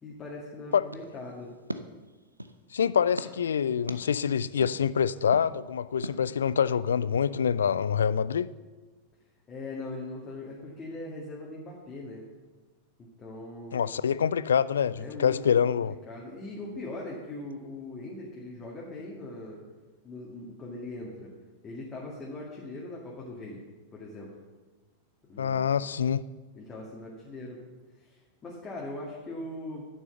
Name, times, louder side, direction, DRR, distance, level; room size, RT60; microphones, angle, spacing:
voice 1, 0.0-1.5 9.5-12.3 13.0-13.9 15.0-15.4 15.8-19.6 20.0-21.3 21.6-23.6 23.9-24.3 25.3-25.7 26.5-27.6 28.0-29.9, left 2 dB, 20° left, 2.1 m, -40 dB
sound 1, 0.9-2.6 3.2-3.3 3.9-4.0 4.6-4.7 5.3-5.5 6.0-6.2, right 1 dB, 85° right, 0.5 m, -39 dB
voice 2, 2.7-8.5 13.7-15.9 25.4-26.2, left 7 dB, 65° left, 0.3 m, -26 dB
11.0 x 6.3 x 6.8 m
figure-of-eight pair, 90°, 0 cm